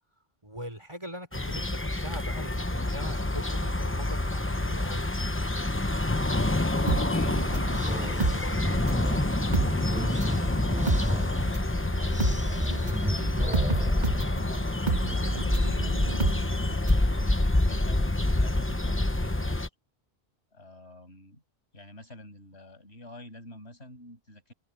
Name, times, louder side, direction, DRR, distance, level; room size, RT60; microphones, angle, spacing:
voice 1, 0.4-5.1 6.8-8.8, equal, 25° right, 5.3 m, -42 dB
sound 1, 1.3-19.7, left 2 dB, 10° left, 0.9 m, -27 dB
sound 2, 6.8-14.7, equal, 5° right, 6.8 m, -34 dB
sound 3, 6.9-9.1 9.4-17.1 17.4-17.5, right 2 dB, 45° right, 2.0 m, -30 dB
voice 2, 7.1-8.0 9.3-19.7 20.5-21.4 21.7-24.5, left 1 dB, 85° left, 8.2 m, -49 dB
open air
omnidirectional pair, 1.1 m